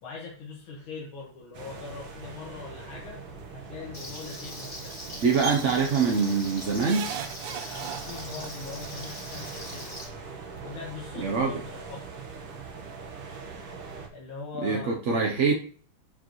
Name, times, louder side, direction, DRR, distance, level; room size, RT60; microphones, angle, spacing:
voice 1, 0.0-3.2 3.5-5.1 7.4-10.0 10.6-12.1 14.1-15.3, left 4 dB, 70° left, -4 dB, 2.4 m, -41 dB
sound 1, 1.5-14.1, right 4 dB, 90° right, 2.4 m, -42 dB
Frying (food), 3.9-10.1, left 1 dB, 40° left, 3.6 m, -42 dB
voice 2, 5.2-7.1 11.2-11.6 14.6-15.5, right 5 dB, 55° right, 0 dB, 0.8 m, -24 dB
sound 2, 5.4-5.7 6.8-8.5 9.7-9.8 10.1-10.2, right 9 dB, 70° right, 1.3 m, -36 dB
12.0 x 5.1 x 3.1 m, 0.43 s
omnidirectional pair, 2.3 m